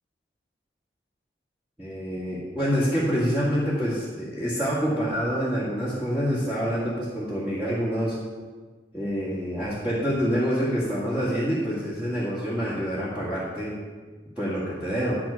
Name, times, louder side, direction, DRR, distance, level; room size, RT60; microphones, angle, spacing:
voice 1, 1.8-8.1 8.9-13.7 14.4-15.2, equal, 5° right, -10 dB, 1.9 m, -26 dB
9.6 x 6.0 x 7.0 m, 1.4 s
head